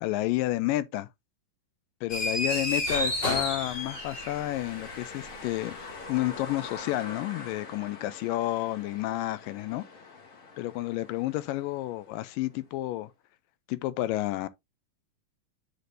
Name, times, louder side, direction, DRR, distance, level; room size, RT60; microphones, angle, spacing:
voice 1, 0.0-1.1 2.0-5.8 6.1-9.8 10.6-13.1 13.7-14.5, left 16 dB, 80° left, 2.1 m, -30 dB
sound 1, 2.1-4.6, left 1 dB, 30° left, 1.2 m, -30 dB
sound 2, 2.8-12.6, left 4 dB, 45° left, 2.5 m, -45 dB
8.3 x 6.0 x 2.6 m
omnidirectional pair, 4.1 m